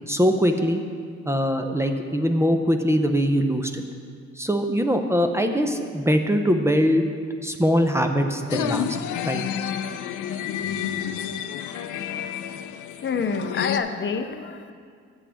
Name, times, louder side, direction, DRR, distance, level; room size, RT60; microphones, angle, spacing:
voice 1, 0.1-0.8 1.3-3.8 4.4-7.0 7.4-9.0 9.2-9.4, equal, 10° right, 5 dB, 0.6 m, -22 dB
sound 1, 8.5-13.8, left 9 dB, 85° left, 0.5 m, -30 dB
voice 2, 13.0-14.7, left 5 dB, 40° left, 8 dB, 0.6 m, -27 dB
12.0 x 7.3 x 3.5 m, 2.1 s
cardioid pair, 90°, 30 cm